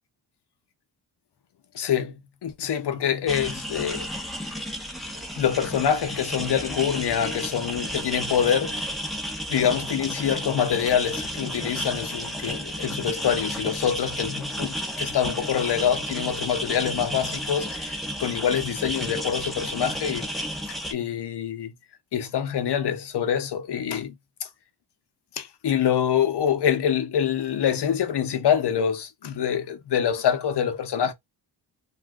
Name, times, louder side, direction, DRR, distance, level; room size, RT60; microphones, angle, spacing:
voice 1, 1.7-4.5 5.4-8.9 9.5-20.3 20.7-21.7 22.1-24.1 24.4-24.5 25.4-31.1, left 8 dB, 70° left, 0.7 m, -25 dB
sound 1, 3.3-20.9, equal, ahead, 0.7 m, -32 dB
2.6 x 2.3 x 3.4 m
wide cardioid pair, 110°, 41 cm